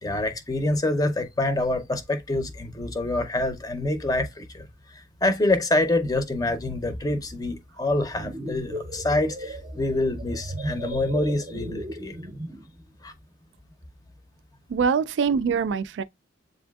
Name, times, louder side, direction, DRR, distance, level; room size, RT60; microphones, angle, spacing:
voice 1, 0.0-12.2 13.0-13.1, left 2 dB, 20° left, 0.5 m, -26 dB
sound 1, 8.1-12.7, right 1 dB, 30° right, 0.6 m, -36 dB
voice 2, 14.7-16.0, right 6 dB, 80° right, 0.3 m, -23 dB
7.6 x 2.6 x 2.3 m
head